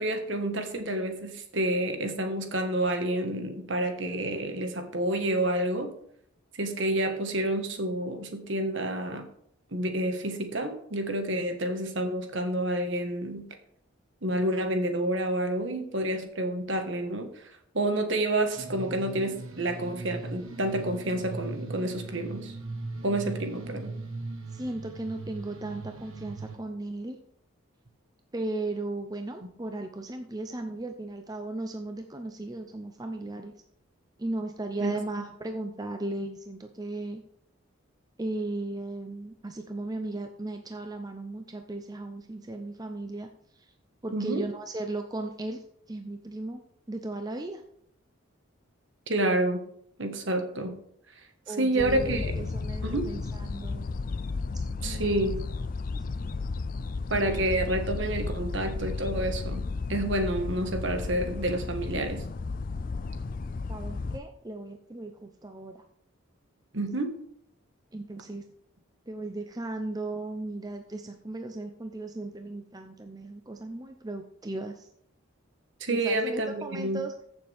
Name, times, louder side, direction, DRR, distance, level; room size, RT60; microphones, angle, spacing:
voice 1, 0.0-5.9 6.5-9.3 9.7-13.4 14.2-22.6 23.0-23.9 34.8-34.9 44.1-44.5 49.1-49.6 50.0-50.8 51.5-52.3 52.8-53.1 54.8-55.4 57.1-62.2 66.7-67.2 75.8-77.0, right 1 dB, 60° right, 6 dB, 1.5 m, -29 dB
sound 1, 18.6-26.6, right 2 dB, 75° right, 1.4 m, -39 dB
voice 2, 24.5-27.2 28.3-33.5 34.2-37.2 38.2-43.3 43.5-43.7 44.0-46.6 46.9-47.6 51.5-53.9 54.5-55.4 55.9-56.0 63.7-65.8 67.9-68.4 69.1-74.9 75.9-77.1, right 2 dB, 20° right, 5 dB, 0.6 m, -36 dB
sound 2, 51.8-64.2, left 3 dB, 40° left, 0.4 m, -33 dB
15.0 x 7.1 x 3.5 m, 0.69 s
head